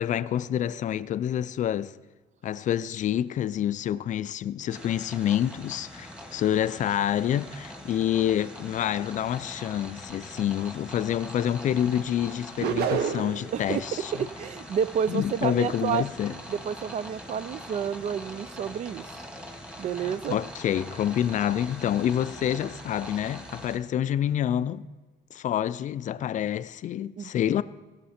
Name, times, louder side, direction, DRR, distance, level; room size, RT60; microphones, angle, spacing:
voice 1, 0.0-2.0 2.4-14.1 15.1-16.3 20.0-24.8 25.3-27.6, left 10 dB, 45° left, 0.4 m, -27 dB
sound 1, 4.7-23.8, equal, 5° right, 1.5 m, -43 dB
Swoosh (Whippy), 12.6-13.5, right 7 dB, 70° right, 0.9 m, -27 dB
voice 2, 13.5-16.0 16.3-19.2 19.8-20.5 27.2-27.3, right 8 dB, 45° right, 0.4 m, -30 dB
19.0 x 6.6 x 4.3 m
cardioid pair, 110°, 17 cm